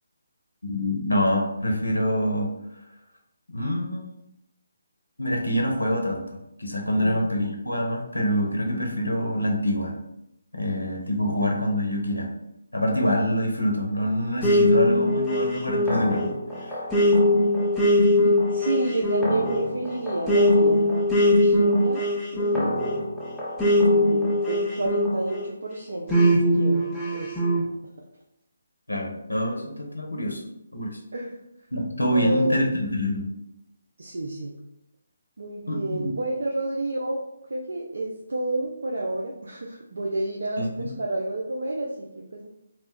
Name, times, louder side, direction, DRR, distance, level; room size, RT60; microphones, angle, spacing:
voice 1, 0.6-2.9 3.5-4.1 5.2-6.2 6.6-9.9 10.5-12.3 12.7-16.3 16.6-16.8 28.9-30.4 30.7-31.0 31.7-33.3 35.7-36.1 40.6-40.9, equal, 85° left, 1 dB, 0.6 m, -26 dB
voice 2, 7.0-7.3 11.2-11.5 18.5-22.1 22.3-22.7 23.8-26.9 27.1-27.4 31.1-31.4 32.1-32.6 34.0-34.5 35.4-37.2 37.5-42.5, right 2 dB, 70° right, -1 dB, 0.4 m, -30 dB
sound 1, 14.4-25.5 26.1-27.6, left 1 dB, 5° left, 0.5 m, -21 dB
2.4 x 2.1 x 3.5 m, 0.83 s
figure-of-eight pair, 150°, 0 cm